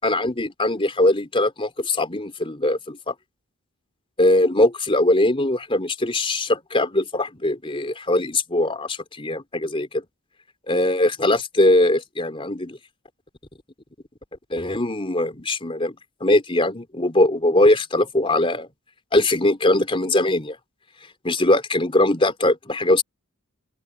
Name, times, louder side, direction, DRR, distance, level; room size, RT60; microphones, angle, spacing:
voice 1, 0.0-3.1 4.2-10.0 10.7-12.8 14.5-16.0 16.2-18.7 19.1-20.6 21.2-23.0, left 1 dB, 25° left, 3.8 m, -21 dB
open air
head